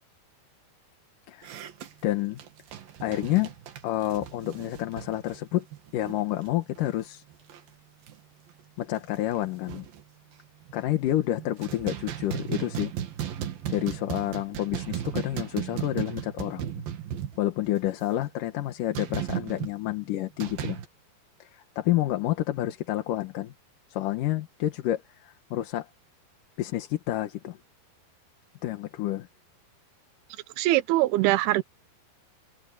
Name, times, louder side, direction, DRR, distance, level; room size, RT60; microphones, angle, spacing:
sound 1, 1.4-6.5 6.8-6.9 7.3-7.7 8.1-8.2 8.6-8.7 8.9-10.0 10.6-11.1 11.4-17.8 18.9-19.7 20.4-20.9, right 10 dB, 65° right, 3.4 m, -36 dB
voice 1, 2.0-2.4 3.0-3.5 3.8-5.6 5.9-7.2 8.8-9.9 10.7-12.9 13.7-16.7 17.4-20.8 21.4-23.5 23.9-25.9 26.6-27.6 28.6-29.3, left 14 dB, 70° left, 2.5 m, -29 dB
voice 2, 30.6-31.6, right 17 dB, 85° right, 2.7 m, -22 dB
omnidirectional pair, 4.6 m